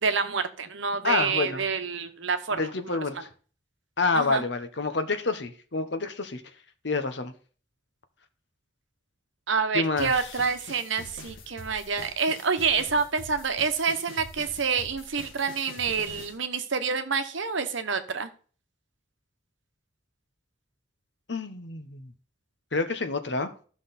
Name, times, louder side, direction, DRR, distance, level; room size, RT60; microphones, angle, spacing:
voice 1, 0.0-2.7 4.1-4.4 9.5-18.3, right 5 dB, 75° right, 1.0 m, -27 dB
voice 2, 1.0-1.6 2.5-3.3 4.0-6.4 6.8-7.3 9.7-10.1 21.3-22.1 22.7-23.5, left 3 dB, 60° left, 1.1 m, -28 dB
sound 1, 10.0-16.4, left 2 dB, 85° left, 2.1 m, -45 dB
14.0 x 6.1 x 4.2 m
head